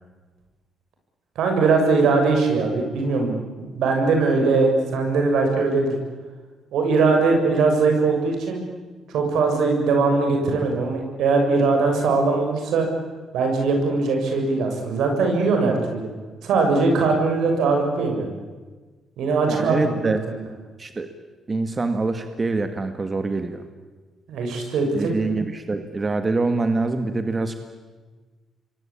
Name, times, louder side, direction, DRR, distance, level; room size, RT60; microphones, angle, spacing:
voice 1, 1.4-3.3 3.7-6.0 6.7-8.6 9.1-12.9 13.3-16.1 16.4-18.3 19.2-20.4 24.3-25.1, right 4 dB, 80° right, 3 dB, 6.8 m, -20 dB
voice 2, 19.5-20.2 20.8-21.1 21.5-23.6 24.9-27.5, right 3 dB, 30° right, 8 dB, 1.9 m, -25 dB
27.5 x 23.0 x 8.7 m, 1.4 s
cardioid pair, 90°, 0 cm